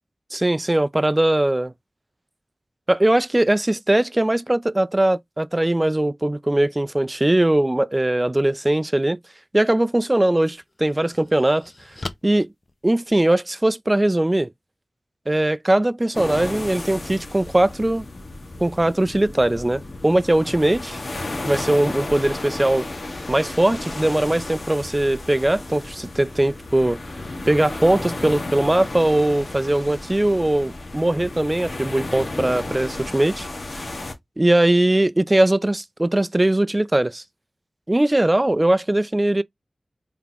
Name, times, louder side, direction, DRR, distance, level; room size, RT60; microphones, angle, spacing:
voice 1, 0.3-1.7 2.9-9.2 9.5-11.7 12.2-12.5 12.8-14.5 15.3-18.1 18.6-21.0 21.4-22.9 23.3-27.0 27.5-33.5 34.4-37.2 37.9-39.4, right 1 dB, 25° right, 0.3 m, -20 dB
sound 1, 9.8-9.9 10.5-13.5, left 2 dB, 40° left, 0.6 m, -39 dB
sound 2, 16.1-34.1, left 2 dB, 60° left, 1.4 m, -33 dB
3.9 x 3.4 x 2.8 m
wide cardioid pair, 50°, 0 cm